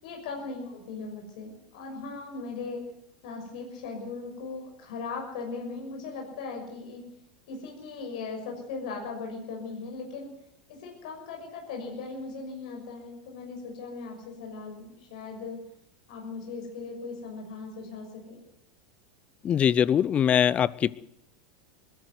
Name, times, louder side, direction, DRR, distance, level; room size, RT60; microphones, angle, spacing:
voice 1, 0.0-2.8 3.2-7.0 7.5-10.3 10.7-15.6 16.1-18.4, left 4 dB, 65° left, 1 dB, 6.4 m, -38 dB
voice 2, 19.4-20.9, left 9 dB, 30° left, 21 dB, 0.8 m, -22 dB
22.0 x 12.5 x 9.6 m, 0.76 s
hypercardioid pair, 100°, 4 cm